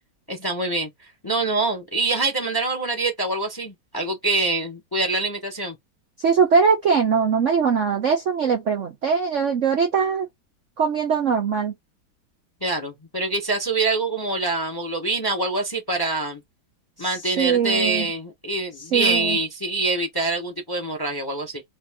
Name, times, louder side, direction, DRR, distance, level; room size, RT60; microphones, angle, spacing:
voice 1, 0.3-0.9 1.2-5.8 12.6-16.4 17.0-21.6, right 3 dB, 15° left, 0.8 m, -25 dB
voice 2, 6.2-10.3 10.8-11.7 17.4-18.1 18.9-19.4, right 6 dB, 60° right, 0.8 m, -21 dB
3.3 x 2.6 x 3.5 m
omnidirectional pair, 2.1 m